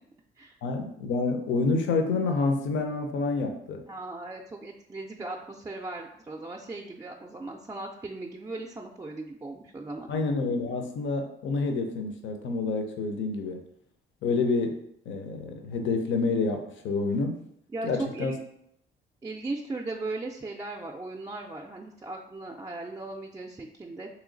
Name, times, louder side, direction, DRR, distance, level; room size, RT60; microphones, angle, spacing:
voice 1, 0.6-3.8 10.1-13.6 14.2-17.4 17.8-18.4, left 3 dB, 75° left, 5 dB, 0.6 m, -28 dB
voice 2, 3.9-10.1 17.7-18.4 19.2-24.1, right 2 dB, 15° right, 1 dB, 0.4 m, -37 dB
3.1 x 3.1 x 3.8 m, 0.73 s
cardioid pair, 90°, 20 cm